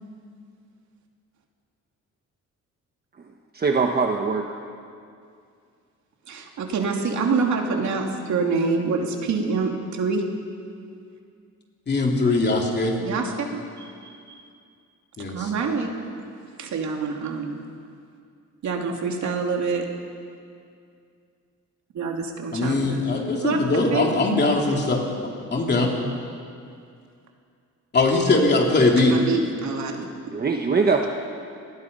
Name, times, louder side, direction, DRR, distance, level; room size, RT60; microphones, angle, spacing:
voice 1, 3.5-4.5 30.3-31.1, right 4 dB, 30° right, 3 dB, 1.2 m, -22 dB
voice 2, 6.3-10.2 13.0-14.1 15.3-15.9 16.6-17.6 18.6-19.8 21.9-23.0 23.4-23.6 23.9-24.1 29.1-30.1, right 4 dB, 70° right, 1 dB, 2.8 m, -26 dB
voice 3, 11.9-12.9 15.2-15.5 22.5-25.0 25.5-25.9 27.9-29.2, left 2 dB, 35° left, 0 dB, 3.2 m, -21 dB
28.0 x 20.0 x 5.5 m, 2.3 s
wide cardioid pair, 160°, 30 cm